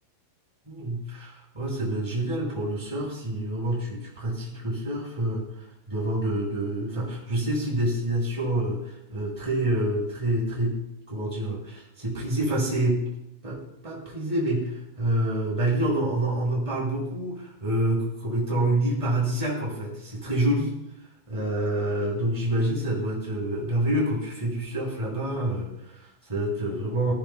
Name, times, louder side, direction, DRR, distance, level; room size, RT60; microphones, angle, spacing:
voice 1, 0.6-10.8 11.1-13.1 13.4-20.7 21.3-27.1, right 1 dB, 5° right, -5 dB, 6.4 m, -27 dB
20.0 x 17.0 x 2.4 m, 0.86 s
omnidirectional pair, 5.7 m